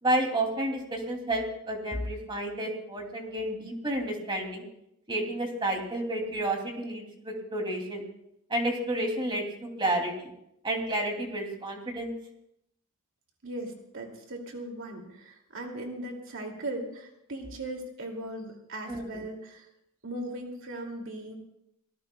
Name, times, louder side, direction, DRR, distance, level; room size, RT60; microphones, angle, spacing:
voice 1, 0.0-4.6 5.1-8.0 8.5-9.4 9.8-10.3 10.6-12.1 18.9-19.2, right 1 dB, 25° right, 2 dB, 2.6 m, -30 dB
voice 2, 13.4-19.7 20.0-21.4, right 1 dB, 70° right, 1 dB, 2.4 m, -38 dB
25.5 x 18.0 x 2.3 m, 0.78 s
head